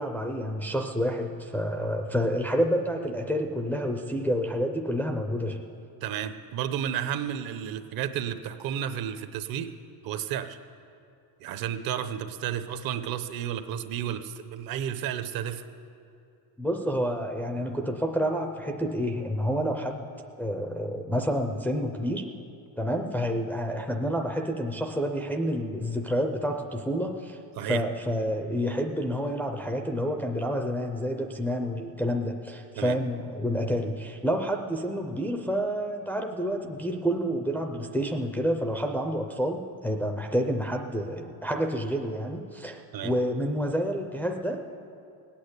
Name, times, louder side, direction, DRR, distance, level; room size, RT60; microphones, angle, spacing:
voice 1, 0.0-5.6 16.6-20.1 20.4-22.3 22.8-44.8, equal, 5° left, 3 dB, 0.4 m, -29 dB
voice 2, 6.0-9.7 10.0-10.6 11.4-15.6 27.6-27.8 32.8-33.0 42.9-43.2, right 9 dB, 55° right, 10 dB, 0.8 m, -32 dB
19.0 x 8.8 x 8.1 m, 2.5 s
cardioid pair, 180°, 42 cm